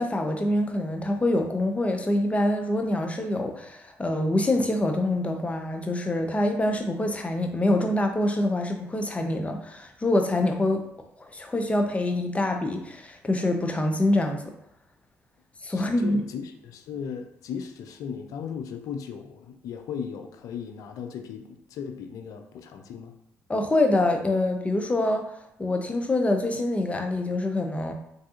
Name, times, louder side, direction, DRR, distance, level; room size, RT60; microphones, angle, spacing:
voice 1, 0.0-10.8 11.2-14.4 15.6-16.2 23.5-25.2 25.6-27.9, left 1 dB, 20° left, 4 dB, 0.6 m, -25 dB
voice 2, 15.7-23.2, left 7 dB, 70° left, 6 dB, 0.4 m, -37 dB
3.4 x 2.7 x 2.4 m, 0.76 s
supercardioid pair, 60°, 6 cm